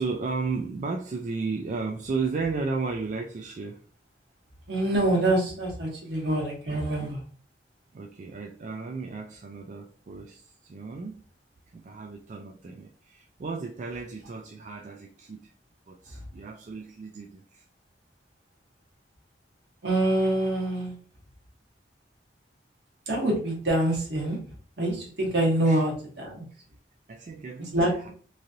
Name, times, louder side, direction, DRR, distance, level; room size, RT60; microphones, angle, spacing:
voice 1, 0.0-3.8 6.7-7.1 7.9-11.2 11.7-15.5 15.9-17.7 25.6-25.9 26.5-26.6 27.1-28.1, right 4 dB, 45° right, 2 dB, 0.3 m, -34 dB
voice 2, 4.7-7.2 19.8-20.9 23.1-24.4 24.8-26.5 27.7-28.1, right 1 dB, 70° right, -2 dB, 1.2 m, -25 dB
3.1 x 2.7 x 2.5 m, 0.44 s
head